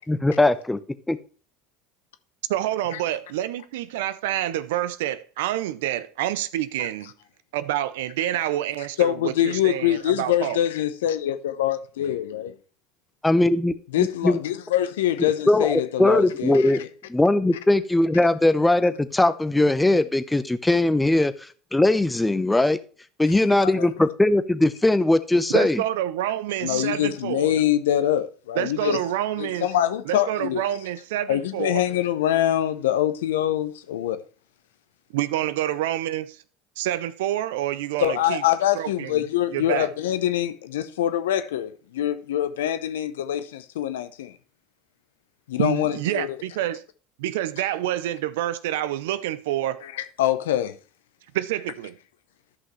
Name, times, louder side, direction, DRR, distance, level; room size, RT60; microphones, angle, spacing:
voice 1, 0.1-0.8 1.1-1.2 13.2-14.4 15.5-16.8 17.1-21.3 21.7-22.8 23.2-25.8, left 2 dB, 10° left, 0.7 m, -20 dB
voice 2, 2.5-7.1 7.5-10.6 25.5-27.5 28.6-29.7 30.1-31.8 35.1-36.4 36.8-38.4 38.7-39.2 39.5-39.9 45.6-46.8 47.2-49.8 51.3-52.0, right 13 dB, 75° right, 0.5 m, -27 dB
voice 3, 9.0-12.5 13.9-16.9 23.6-23.9 26.6-29.0 29.4-30.6 31.3-34.2 38.0-44.3 45.5-46.3 49.8-50.8, left 12 dB, 80° left, 0.7 m, -24 dB
13.0 x 5.6 x 3.1 m
hypercardioid pair, 80°, 0 cm